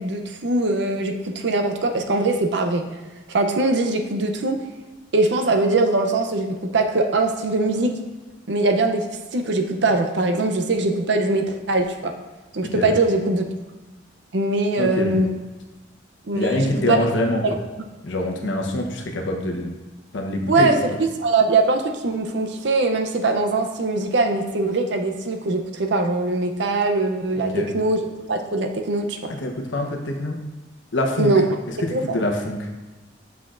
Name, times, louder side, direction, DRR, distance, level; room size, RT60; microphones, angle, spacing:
voice 1, 0.0-2.8 3.3-4.6 5.1-8.0 8.5-12.1 12.5-13.5 14.3-15.4 16.3-17.0 17.4-17.5 20.5-20.8 21.2-28.0 28.3-29.2 31.2-31.4 31.9-32.2, right 2 dB, 65° right, 5 dB, 0.6 m, -21 dB
voice 2, 12.6-12.9 14.8-15.2 16.3-17.4 18.0-19.7 20.1-20.8 27.5-27.7 29.3-30.4 30.9-31.3 31.8-32.7, left 1 dB, 80° left, 2 dB, 0.9 m, -25 dB
8.2 x 5.8 x 2.5 m, 1.2 s
head